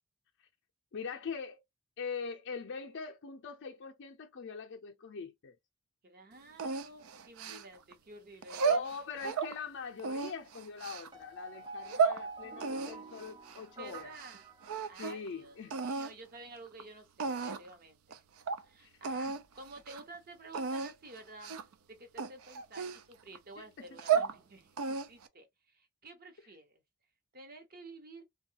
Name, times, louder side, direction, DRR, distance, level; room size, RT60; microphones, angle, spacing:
voice 1, 0.9-1.6 2.0-5.5 8.6-14.1 15.0-15.8 18.8-18.9 19.2-19.4 23.6-23.7 24.1-24.2, left 5 dB, 55° left, 0.5 m, -42 dB
voice 2, 6.0-8.9 13.7-14.5 14.8-18.2 18.6-21.6 21.9-26.8 27.3-28.2, right 2 dB, 45° right, 0.8 m, -52 dB
sound 1, 6.6-7.9 8.4-9.5 10.0-11.1 11.7-12.2 12.6-14.4 14.6-15.3 15.7-16.1 16.8-16.9 17.2-17.7 18.1-18.2 18.5-18.6 19.0-19.4 19.8-20.0 20.5-20.9 21.4-21.7 22.2-23.4 23.8-24.4 24.8-25.3, right 6 dB, 75° right, 0.4 m, -33 dB
sound 2, 11.1-15.4, right 4 dB, 20° right, 0.5 m, -48 dB
3.6 x 2.3 x 2.7 m
head